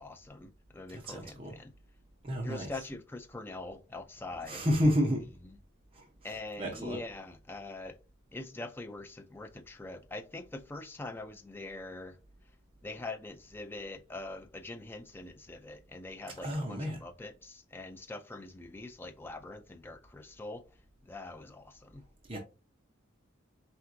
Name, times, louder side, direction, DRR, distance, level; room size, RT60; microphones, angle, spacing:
voice 1, 0.0-1.7 2.4-4.7 5.4-5.6 6.2-8.0 8.3-12.2 12.8-20.6 21.0-22.0, left 2 dB, 10° left, 0.3 m, -43 dB
voice 2, 0.9-1.5 2.2-2.8 4.5-5.3 6.3-7.0 16.4-17.0 22.3-22.4, equal, 30° right, 0.7 m, -31 dB
4.5 x 3.4 x 2.5 m
head